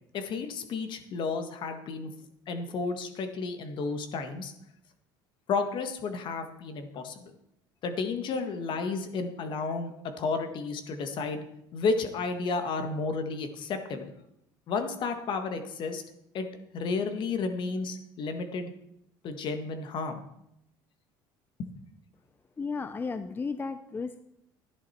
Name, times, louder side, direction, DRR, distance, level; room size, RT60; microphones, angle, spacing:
voice 1, 0.1-2.1 2.5-4.5 5.5-7.3 7.8-11.4 11.7-14.1 14.7-16.0 16.3-16.5 16.7-18.7 19.2-20.2 21.6-21.7, left 4 dB, 50° left, 7 dB, 1.8 m, -32 dB
voice 2, 22.6-24.2, left 4 dB, 20° left, 11 dB, 0.6 m, -34 dB
13.0 x 10.5 x 4.5 m, 0.80 s
supercardioid pair, 105°, 10 cm